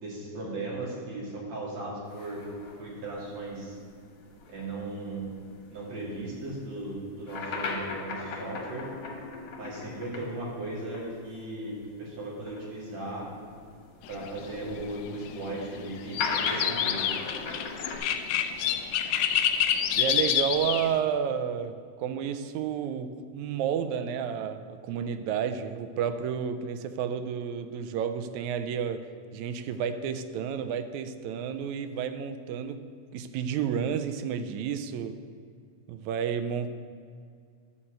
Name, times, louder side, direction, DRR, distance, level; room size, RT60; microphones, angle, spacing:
voice 1, 0.0-2.4 2.8-3.8 4.5-5.3 5.7-8.9 9.6-13.3 14.1-17.0, right 2 dB, 60° right, 3.7 m, -37 dB
sound 1, 2.1-11.1 11.3-11.4 12.3-18.0, left 4 dB, 65° left, 2.6 m, -39 dB
sound 2, 14.1-21.0, left 9 dB, 90° left, 1.4 m, -28 dB
voice 2, 20.0-35.2 35.9-36.7, right 8 dB, 80° right, 1.8 m, -31 dB
12.5 x 4.4 x 7.8 m
omnidirectional pair, 3.5 m